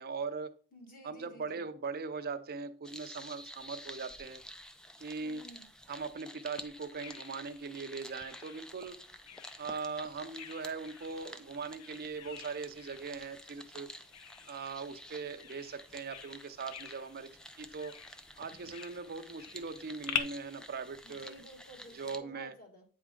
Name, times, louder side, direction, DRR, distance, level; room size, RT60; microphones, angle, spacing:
voice 1, 0.0-0.6 1.0-4.4 5.0-5.4 5.9-9.0 9.6-13.9 14.5-17.3 17.6-18.0 18.4-21.3 21.9-22.5, right 4 dB, 45° right, 0.6 m, -40 dB
voice 2, 0.7-1.6 5.2-5.7 21.0-22.8, equal, 40° left, 1.7 m, -53 dB
sound 1, 2.8-22.2, equal, 5° left, 0.3 m, -51 dB
Bird vocalization bird call bird song, 6.6-20.2, left 8 dB, 80° left, 0.6 m, -46 dB
8.8 x 3.6 x 3.7 m
head